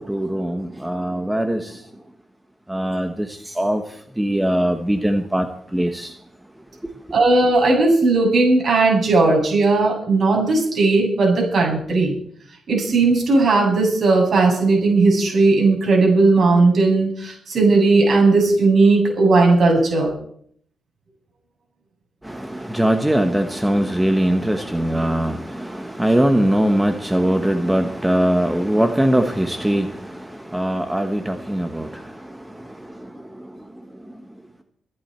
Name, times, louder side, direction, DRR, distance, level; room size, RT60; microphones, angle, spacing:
voice 1, 0.0-1.8 2.7-3.8 4.2-5.5 5.7-6.1 22.2-32.2 33.0-33.1, right 1 dB, 5° right, 1.0 m, -21 dB
voice 2, 7.1-12.2 12.7-20.1, right 3 dB, 50° right, 7.7 m, -16 dB
23.5 x 11.0 x 4.5 m
cardioid pair, 135°, 0 cm